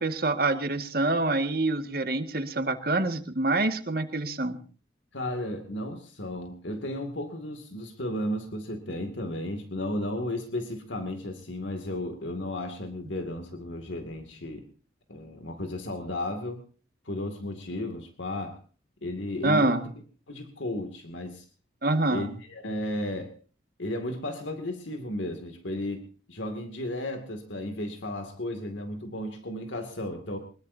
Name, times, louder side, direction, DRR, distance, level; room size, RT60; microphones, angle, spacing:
voice 1, 0.0-4.6 19.4-19.9 21.8-22.4, right 2 dB, 50° right, 6 dB, 1.9 m, -26 dB
voice 2, 5.1-14.6 15.1-16.6 17.1-18.6 19.0-19.9 20.3-21.4 22.1-23.3 23.8-30.4, left 1 dB, 80° left, 6 dB, 2.4 m, -34 dB
23.5 x 21.0 x 2.8 m, 0.40 s
head